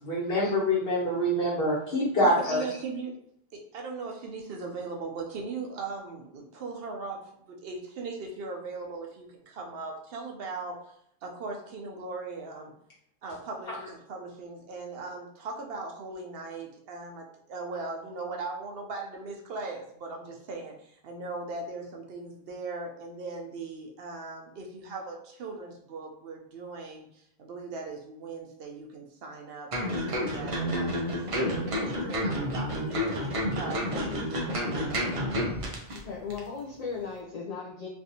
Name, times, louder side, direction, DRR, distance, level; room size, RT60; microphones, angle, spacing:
voice 1, 0.0-2.6, left 1 dB, 70° left, -6 dB, 1.5 m, -25 dB
voice 2, 2.2-3.2 3.5-10.8 11.2-12.7 13.2-33.1 33.6-35.2, right 3 dB, 70° right, 1 dB, 0.8 m, -39 dB
sound 1, 29.7-36.0 36.3-36.4, equal, 40° right, 0.6 m, -30 dB
voice 3, 33.9-34.2 35.9-37.9, left 5 dB, 50° left, -2 dB, 0.5 m, -37 dB
3.2 x 2.6 x 2.7 m, 0.69 s
omnidirectional pair, 1.1 m